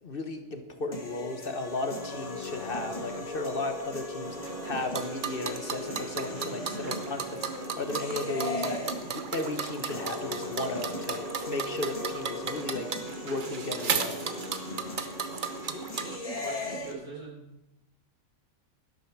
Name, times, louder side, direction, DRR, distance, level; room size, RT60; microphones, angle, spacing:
voice 1, 0.0-12.9 13.2-14.3, left 2 dB, 45° left, 7 dB, 1.1 m, -35 dB
sound 1, 0.9-16.9, left 2 dB, 25° left, 1.5 m, -38 dB
sound 2, 4.2-16.2, right 5 dB, 40° right, 0.9 m, -35 dB
voice 2, 15.9-17.5, right 3 dB, 85° right, -3 dB, 4.3 m, -43 dB
12.5 x 11.5 x 4.7 m, 0.93 s
omnidirectional pair, 1.5 m